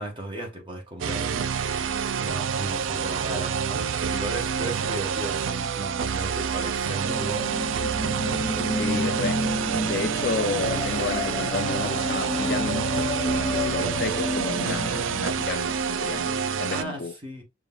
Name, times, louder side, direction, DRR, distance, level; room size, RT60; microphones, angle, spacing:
voice 1, 0.0-1.4 2.2-7.5 16.7-17.4, right 1 dB, 25° right, 1.7 m, -35 dB
sound 1, 1.0-16.8, right 7 dB, 80° right, 0.4 m, -28 dB
sound 2, 7.0-15.0, left 1 dB, 15° left, 0.9 m, -30 dB
voice 2, 8.8-9.4 9.8-13.0 13.3-17.1, left 4 dB, 55° left, 0.6 m, -31 dB
6.7 x 3.0 x 2.4 m
head